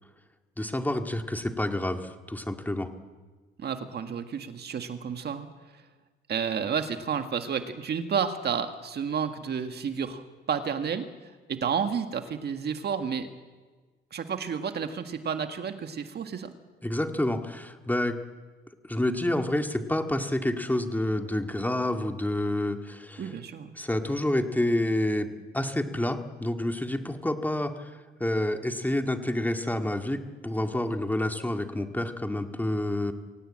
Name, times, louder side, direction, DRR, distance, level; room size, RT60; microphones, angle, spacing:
voice 1, 0.6-2.9 16.8-18.2 18.8-23.3 23.8-27.9 28.2-33.1, left 1 dB, 10° left, 5 dB, 2.0 m, -28 dB
voice 2, 3.6-5.5 6.3-11.1 11.5-13.3 14.1-16.5 23.2-23.7, right 7 dB, 55° right, 7 dB, 1.9 m, -31 dB
24.0 x 17.5 x 8.8 m, 1.3 s
cardioid pair, 90°, 20 cm